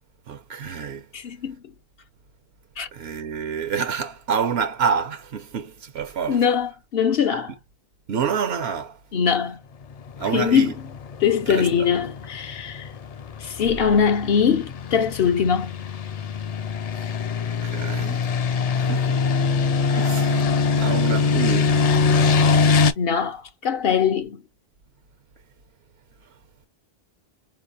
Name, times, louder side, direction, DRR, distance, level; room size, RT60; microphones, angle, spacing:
voice 1, 0.3-1.1 2.9-6.4 8.1-9.0 10.2-10.7 11.5-11.9 17.6-18.2 18.8-19.2 19.9-20.5 20.8-21.8, right 6 dB, 85° right, 0.9 m, -27 dB
voice 2, 1.1-1.6 2.8-2.9 6.3-7.5 9.1-9.6 10.3-10.7 11.2-12.9 13.4-15.8 23.0-24.4, left 7 dB, 70° left, 0.9 m, -22 dB
sound 1, 10.0-22.9, left 5 dB, 50° left, 0.5 m, -23 dB
4.6 x 3.1 x 2.5 m
omnidirectional pair, 1.0 m